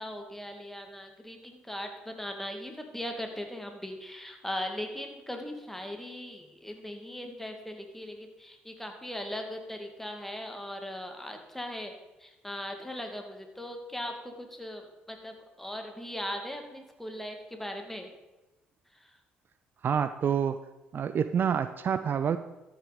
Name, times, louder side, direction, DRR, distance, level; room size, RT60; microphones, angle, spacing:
voice 1, 0.0-11.9 12.2-18.1 18.9-19.2, left 1 dB, 5° left, 3 dB, 2.3 m, -39 dB
voice 2, 19.8-20.6 20.9-22.4, right 7 dB, 50° right, 12 dB, 0.5 m, -27 dB
13.5 x 6.0 x 5.2 m, 1.0 s
hypercardioid pair, 55°, 4 cm